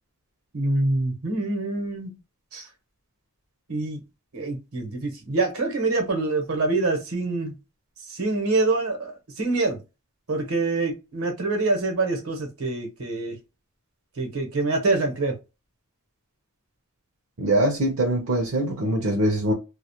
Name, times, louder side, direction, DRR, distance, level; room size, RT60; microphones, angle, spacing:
voice 1, 0.5-2.1 2.5-2.7 3.7-4.0 4.3-7.5 8.1-9.8 10.3-13.4 14.2-15.3, right 3 dB, 90° right, 0.9 m, -25 dB
voice 2, 17.4-19.5, right 1 dB, 70° right, 0.6 m, -23 dB
2.3 x 2.1 x 2.8 m
head